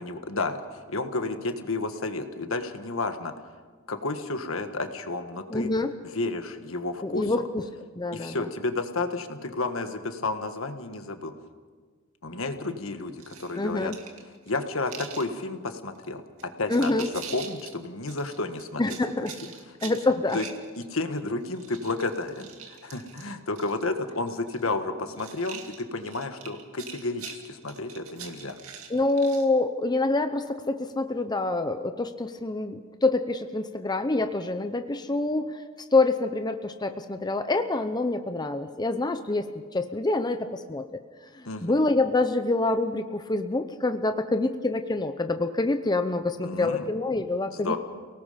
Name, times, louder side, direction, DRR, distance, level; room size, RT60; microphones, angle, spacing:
voice 1, 0.0-3.3 3.9-5.7 6.0-7.3 8.1-11.3 12.2-13.9 14.5-19.0 20.3-20.4 20.8-28.6 41.4-41.8 46.4-46.9 47.5-47.8, left 3 dB, 70° left, 7 dB, 1.6 m, -31 dB
voice 2, 5.5-5.9 7.0-7.7 8.0-8.5 13.6-14.0 16.7-17.1 18.8-19.3 19.8-20.4 28.9-35.6 35.9-41.0 41.3-47.8, left 2 dB, 20° left, 8 dB, 0.7 m, -26 dB
sound 1, 13.2-15.3 15.9-16.1 16.4-17.7 18.1-21.2 21.4-23.8 24.1-24.7 25.1-29.5, right 7 dB, 85° right, 2.3 m, -43 dB
29.5 x 18.5 x 5.2 m, 1.5 s
head